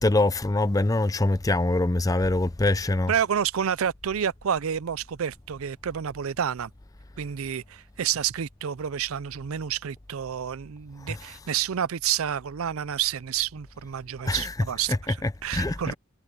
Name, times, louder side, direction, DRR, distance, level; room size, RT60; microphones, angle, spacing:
voice 1, 0.0-3.1 11.1-11.2 14.2-14.5 14.9-15.9, left 2 dB, 15° left, 0.5 m, -24 dB
voice 2, 3.1-6.7 7.2-15.2 15.4-15.9, right 8 dB, 75° right, 0.5 m, -29 dB
head